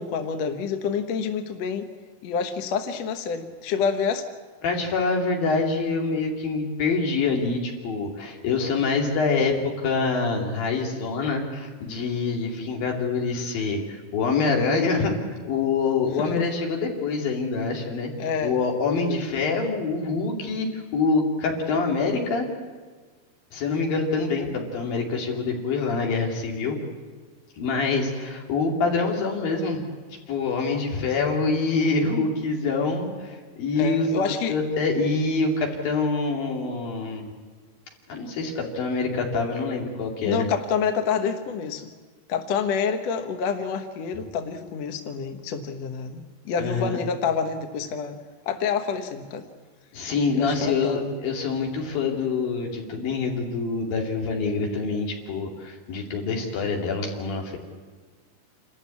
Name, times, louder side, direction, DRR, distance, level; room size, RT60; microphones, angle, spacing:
voice 1, 0.0-1.9 2.2-4.3 16.2-16.5 18.2-18.6 19.0-19.2 33.8-34.6 40.2-41.9 42.3-48.2 48.5-49.5 50.4-51.1, left 6 dB, 60° left, 6 dB, 2.1 m, -28 dB
voice 2, 4.6-15.1 15.4-18.1 18.4-22.5 23.5-26.8 27.6-29.9 30.3-34.2 34.5-37.3 38.1-40.5 46.6-47.0 49.9-57.6, left 4 dB, 90° left, 0 dB, 4.6 m, -25 dB
28.0 x 14.0 x 8.5 m, 1.5 s
omnidirectional pair, 4.0 m